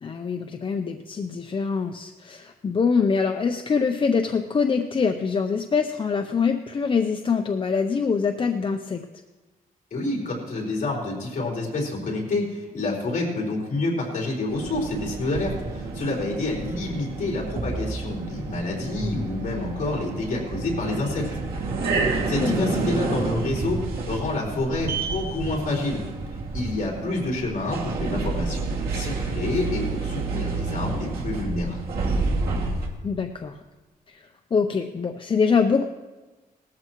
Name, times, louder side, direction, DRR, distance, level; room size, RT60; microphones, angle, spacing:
voice 1, 0.0-9.0 22.4-22.9 33.0-33.6 34.1-34.2 34.5-35.9, left 5 dB, 35° left, 5 dB, 0.6 m, -24 dB
voice 2, 9.9-21.2 22.3-23.8 24.1-26.0 26.5-31.8, left 2 dB, 60° left, -3 dB, 4.1 m, -28 dB
sound 1, 14.5-32.9, right 3 dB, 90° right, 2.3 m, -29 dB
19.0 x 13.5 x 3.1 m, 1.2 s
wide cardioid pair, 150°, 15 cm